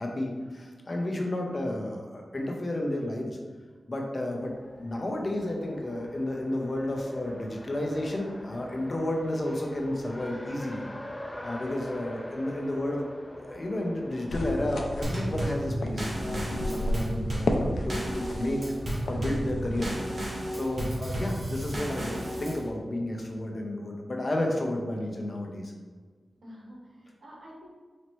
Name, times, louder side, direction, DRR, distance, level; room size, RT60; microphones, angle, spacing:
voice 1, 0.0-3.4 3.9-4.5 4.8-10.9 11.4-13.1 13.4-18.6 19.1-19.9 20.5-22.1 22.4-25.7, left 1 dB, 40° left, 0 dB, 0.6 m, -32 dB
Race car auto racing, 4.4-19.4, left 1 dB, 15° left, 0.3 m, -45 dB
sound 1, 14.3-19.9, left 1 dB, 85° left, 0.4 m, -33 dB
Drum kit / Snare drum / Bass drum, 15.0-22.7, right 1 dB, 45° right, 1.1 m, -33 dB
voice 2, 26.4-27.7, equal, 70° right, -3 dB, 1.0 m, -48 dB
4.1 x 2.8 x 3.1 m, 1.5 s
wide cardioid pair, 95°, 0 cm